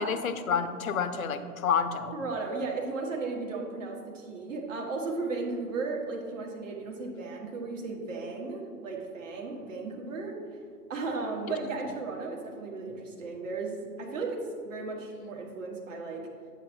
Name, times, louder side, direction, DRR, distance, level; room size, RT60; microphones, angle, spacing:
voice 1, 0.0-2.2, left 6 dB, 60° left, 9 dB, 0.7 m, -29 dB
voice 2, 2.1-10.3 10.9-16.2, right 3 dB, 55° right, 0 dB, 1.5 m, -35 dB
9.0 x 7.6 x 2.7 m, 2.1 s
figure-of-eight pair, 110°, 47 cm